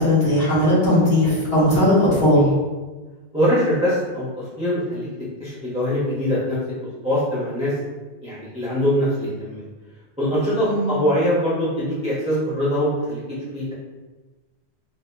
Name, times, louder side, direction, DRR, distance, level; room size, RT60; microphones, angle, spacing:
voice 1, 0.0-2.5 10.6-11.0, left 1 dB, 60° left, -10 dB, 1.7 m, -18 dB
voice 2, 3.3-5.1 5.4-6.6 7.0-7.7 8.2-9.6 10.2-13.2 13.5-13.7, equal, 5° right, -9 dB, 0.9 m, -22 dB
4.1 x 2.9 x 2.2 m, 1.2 s
omnidirectional pair, 1.2 m